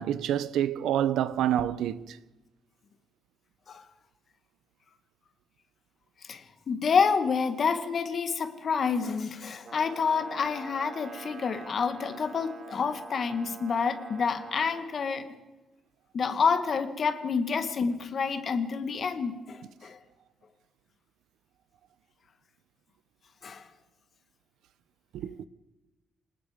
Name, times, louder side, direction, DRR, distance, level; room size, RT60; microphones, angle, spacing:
voice 1, 0.0-2.2 25.1-25.5, right 11 dB, 80° right, 1.0 m, -28 dB
voice 2, 6.2-15.3 16.1-20.0 23.4-23.7, left 5 dB, 40° left, 2.0 m, -28 dB
Brass instrument, 9.6-14.9, right 5 dB, 35° right, 4.2 m, -46 dB
28.0 x 19.0 x 5.2 m
cardioid pair, 155°, 0 cm